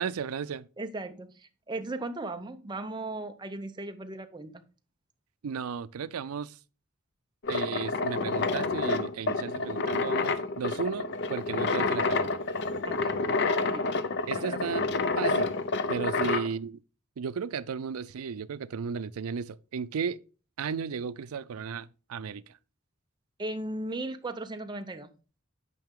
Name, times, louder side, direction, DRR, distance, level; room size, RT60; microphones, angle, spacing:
voice 1, 0.0-0.7 5.4-6.6 7.5-12.4 14.3-14.8 15.2-15.6 15.9-16.8 17.2-20.2 20.6-22.6, right 6 dB, 85° right, 0.4 m, -34 dB
voice 2, 0.8-4.6 12.8-13.2 13.7-14.0 14.4-14.7 16.2-16.3 23.4-25.1, right 2 dB, 20° right, 0.6 m, -37 dB
sound 1, 7.4-16.5, left 3 dB, 55° left, 0.6 m, -29 dB
9.1 x 5.5 x 3.6 m
head